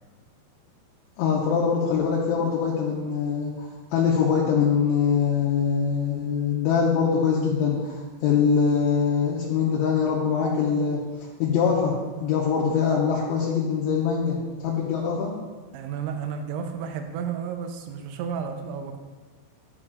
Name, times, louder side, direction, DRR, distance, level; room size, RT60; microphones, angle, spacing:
voice 1, 1.2-11.0 11.4-15.3, left 6 dB, 80° left, -4 dB, 2.9 m, -23 dB
voice 2, 15.7-19.0, right 7 dB, 80° right, 5 dB, 2.8 m, -32 dB
9.7 x 8.5 x 2.4 m, 1.3 s
omnidirectional pair, 5.7 m